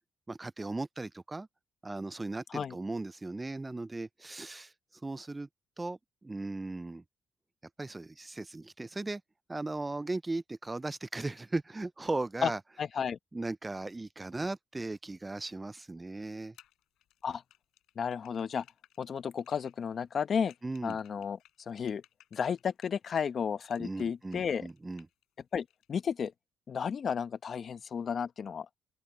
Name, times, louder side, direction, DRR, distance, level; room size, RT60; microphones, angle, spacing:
voice 1, 0.3-1.5 1.8-4.7 5.0-5.5 5.8-7.0 7.8-9.2 9.5-12.6 13.3-16.5 20.6-21.0 23.8-25.1, right 2 dB, 20° right, 0.4 m, -37 dB
voice 2, 12.8-13.2 17.2-17.4 18.0-18.6 19.0-20.5 20.8-21.4 21.7-22.0 22.3-24.7 25.5-26.3 26.7-28.7, left 7 dB, 50° left, 0.9 m, -33 dB
sound 1, 16.5-23.3 23.6-25.2 25.5-26.3, left 13 dB, 85° left, 5.9 m, -62 dB
open air
cardioid pair, 90°, 0 cm